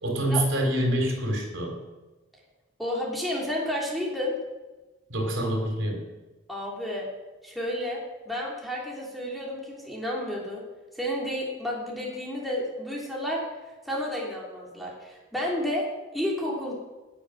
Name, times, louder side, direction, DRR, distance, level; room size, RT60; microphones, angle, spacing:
voice 1, 0.0-1.8 5.1-6.1, right 1 dB, 85° right, 2 dB, 3.7 m, -26 dB
voice 2, 2.8-4.4 6.5-7.1 7.4-10.6 10.9-13.4 13.8-15.9 16.1-16.7, left 1 dB, ahead, -4 dB, 3.3 m, -31 dB
18.5 x 7.5 x 6.4 m, 1.1 s
head